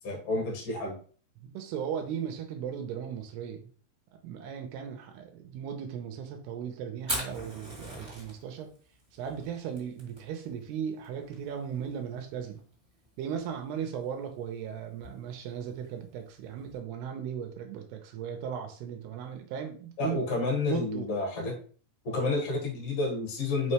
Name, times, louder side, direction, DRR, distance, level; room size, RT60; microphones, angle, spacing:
voice 1, 0.0-1.0 20.0-21.6 22.0-23.7, left 2 dB, 55° left, -1 dB, 1.8 m, -30 dB
voice 2, 1.4-3.7 4.2-8.7 9.1-12.6 13.2-20.2 20.7-21.1, right 8 dB, 85° right, 5 dB, 2.7 m, -37 dB
Fire, 7.0-16.8, right 1 dB, 10° right, 1.8 m, -43 dB
5.6 x 5.5 x 3.2 m, 0.43 s
omnidirectional pair, 4.9 m